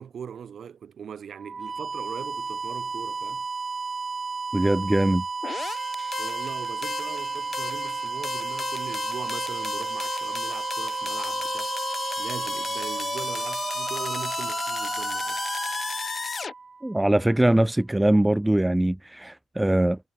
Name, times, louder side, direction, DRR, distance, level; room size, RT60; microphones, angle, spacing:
voice 1, 0.0-3.5 6.2-15.4, right 7 dB, 55° right, 5.3 m, -40 dB
sound 1, 1.3-17.1, right 4 dB, 30° right, 4.0 m, -33 dB
voice 2, 4.5-5.3 16.8-20.0, right 1 dB, 10° right, 0.4 m, -22 dB
sound 2, 5.4-16.5, left 5 dB, 40° left, 3.3 m, -34 dB
cardioid pair, 90°, 0 cm